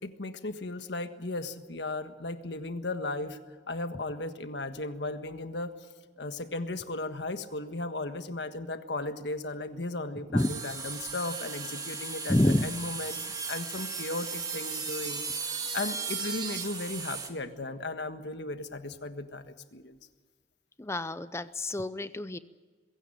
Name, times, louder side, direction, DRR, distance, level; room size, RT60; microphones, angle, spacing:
voice 1, 0.0-3.4 3.7-5.7 6.2-12.4 12.6-13.2 13.5-20.0, left 2 dB, 70° left, 8 dB, 1.5 m, -36 dB
sound 1, 10.4-17.3, right 5 dB, 20° right, 2.0 m, -36 dB
voice 2, 12.3-12.7 20.8-22.4, left 1 dB, 15° left, 14 dB, 0.6 m, -27 dB
22.0 x 16.5 x 9.9 m, 1.5 s
head